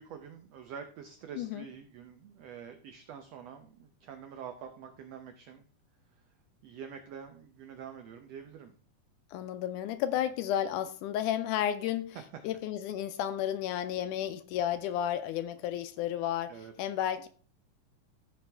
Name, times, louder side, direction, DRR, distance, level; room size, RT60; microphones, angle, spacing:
voice 1, 0.0-5.6 6.1-6.3 6.6-8.7 12.1-12.2 16.5-16.7, right 7 dB, 85° right, 7 dB, 1.4 m, -46 dB
voice 2, 9.3-12.2 12.4-16.5 16.8-17.3, left 11 dB, 80° left, 11 dB, 2.0 m, -32 dB
15.0 x 5.0 x 3.4 m, 0.43 s
omnidirectional pair, 3.8 m